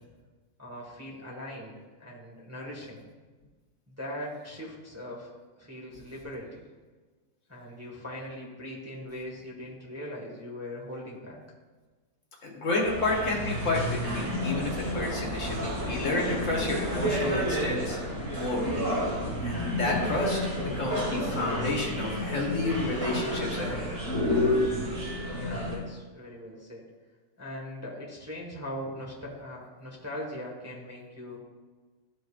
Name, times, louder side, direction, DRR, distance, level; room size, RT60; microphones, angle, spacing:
voice 1, 0.6-1.7 2.0-3.1 3.9-5.3 5.6-6.7 7.5-11.4 25.3-26.9 27.4-31.4, left 1 dB, 10° right, -4 dB, 1.3 m, -40 dB
voice 2, 12.4-18.0 18.3-18.7 19.4-23.9, left 3 dB, 60° left, -2 dB, 1.7 m, -30 dB
sound 1, 12.8-25.8, equal, 80° right, 2.5 m, -30 dB
13.0 x 5.2 x 2.4 m, 1.3 s
omnidirectional pair, 1.5 m